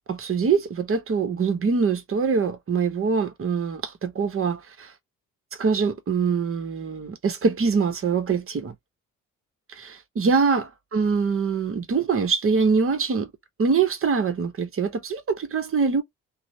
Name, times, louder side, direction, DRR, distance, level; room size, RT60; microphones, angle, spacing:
voice 1, 0.1-4.9 5.6-8.7 9.7-10.6 10.9-13.3 13.6-16.0, right 5 dB, 40° right, 0.8 m, -24 dB
2.8 x 2.0 x 2.7 m
supercardioid pair, 60°, 33 cm